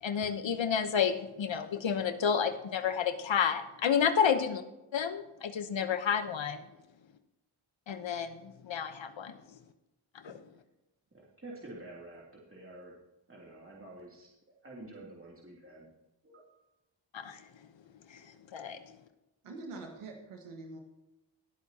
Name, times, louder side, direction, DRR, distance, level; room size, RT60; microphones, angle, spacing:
voice 1, 0.0-4.6 4.9-6.6 7.9-9.3 10.2-10.4 17.1-17.4 18.1-18.2 18.5-18.8, left 7 dB, 65° left, 9 dB, 1.0 m, -30 dB
voice 2, 11.1-13.0 13.3-15.9 16.2-16.6, right 2 dB, 25° right, -3 dB, 2.9 m, -49 dB
voice 3, 19.4-20.8, right 3 dB, 90° right, 2 dB, 1.8 m, -44 dB
19.5 x 8.0 x 2.9 m, 0.95 s
cardioid pair, 45°, 49 cm